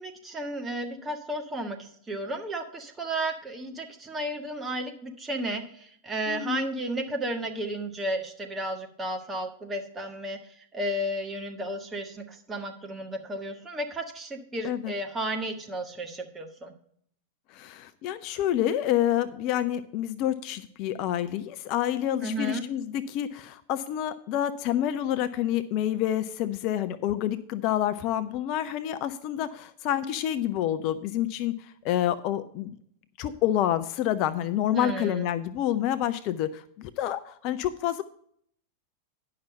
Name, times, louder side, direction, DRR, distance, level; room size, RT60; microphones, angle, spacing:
voice 1, 0.0-1.8 2.1-10.4 10.7-16.7 22.2-22.6 34.7-35.3, right 1 dB, 15° right, 3 dB, 1.5 m, -33 dB
voice 2, 6.3-6.7 14.6-14.9 17.5-32.8 33.2-38.0, left 11 dB, 40° left, 12 dB, 0.5 m, -28 dB
10.5 x 5.8 x 5.3 m, 0.64 s
figure-of-eight pair, 90°, 0 cm